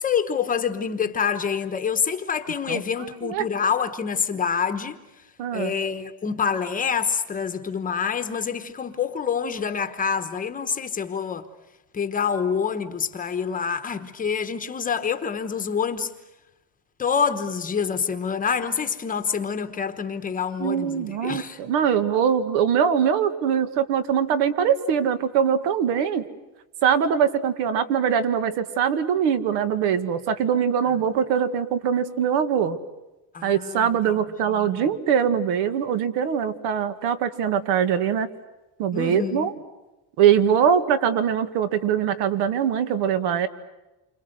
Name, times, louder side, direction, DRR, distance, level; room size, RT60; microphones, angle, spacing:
voice 1, 0.0-5.0 5.5-11.5 11.9-16.1 17.0-21.6 33.3-33.9 34.1-34.2 34.5-34.9 38.9-39.5, left 6 dB, 20° left, 1.1 m, -26 dB
voice 2, 5.4-5.7 20.6-26.2 26.8-32.8 33.4-38.3 38.8-39.5 40.2-43.5, right 8 dB, 75° right, 2.1 m, -22 dB
29.0 x 26.0 x 8.0 m
cardioid pair, 180°, 42 cm